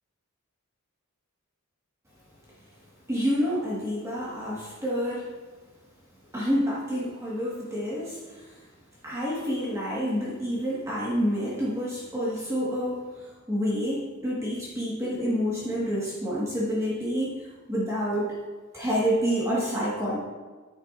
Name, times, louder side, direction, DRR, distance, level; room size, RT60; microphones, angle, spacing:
voice 1, 3.1-5.3 6.3-8.6 9.0-18.4 18.7-20.2, equal, 15° right, -7 dB, 1.7 m, -28 dB
10.0 x 10.0 x 2.6 m, 1.3 s
head